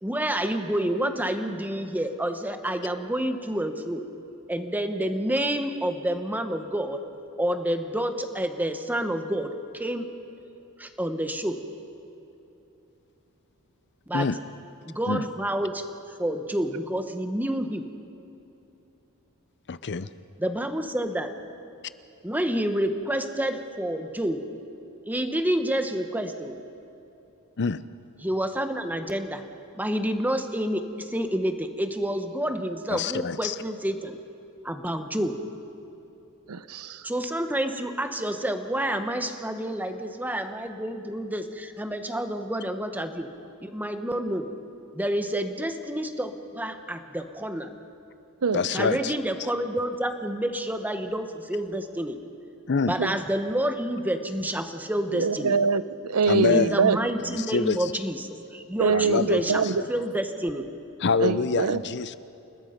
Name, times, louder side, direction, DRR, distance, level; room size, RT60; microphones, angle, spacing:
voice 1, 0.0-4.1 4.5-7.0 7.4-10.1 10.8-11.6 14.1-14.3 14.8-15.8 16.2-17.9 20.4-21.3 22.2-24.4 25.1-26.6 28.2-29.4 29.7-34.2 34.6-35.4 37.0-43.3 43.6-44.5 44.9-47.7 48.7-52.2 52.8-55.6 56.5-59.6 59.9-60.6, right 1 dB, 10° right, 7 dB, 1.2 m, -28 dB
voice 2, 19.7-20.1 27.6-27.8 32.9-33.5 48.5-49.1 52.7-53.0 56.3-56.7 57.3-57.9 58.9-59.9 61.0-62.2, left 4 dB, 55° left, 15 dB, 0.7 m, -26 dB
voice 3, 36.5-37.0 48.4-48.7 53.0-53.2 55.1-57.0 58.8-59.7 61.2-61.8, right 4 dB, 90° right, 14 dB, 0.7 m, -24 dB
29.5 x 19.5 x 5.2 m, 2.9 s
head